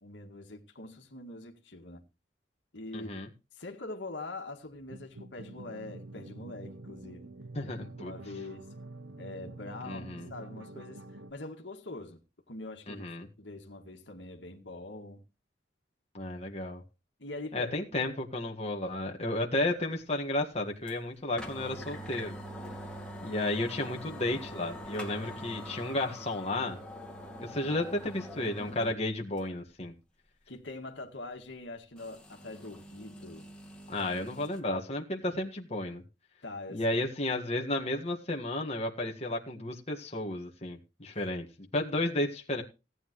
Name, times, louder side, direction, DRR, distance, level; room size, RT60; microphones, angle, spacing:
voice 1, 0.0-2.0 2.7-3.3 3.5-7.3 8.0-8.7 9.2-12.2 12.5-15.2 17.2-18.1 30.5-33.5 34.0-34.1 36.4-37.0 41.1-41.3, left 2 dB, 70° left, 2.0 m, -44 dB
voice 2, 2.9-3.3 7.6-8.1 9.8-10.3 12.9-13.3 16.1-16.8 17.5-22.3 23.2-26.8 27.4-29.9 33.9-36.0 36.7-42.6, left 1 dB, 35° left, 1.8 m, -33 dB
sound 1, 4.8-11.3, right 2 dB, 85° right, 1.0 m, -47 dB
sound 2, 20.9-21.0 21.4-29.0 29.4-29.5 32.0-34.6, equal, 5° left, 2.3 m, -44 dB
17.0 x 9.5 x 3.1 m
head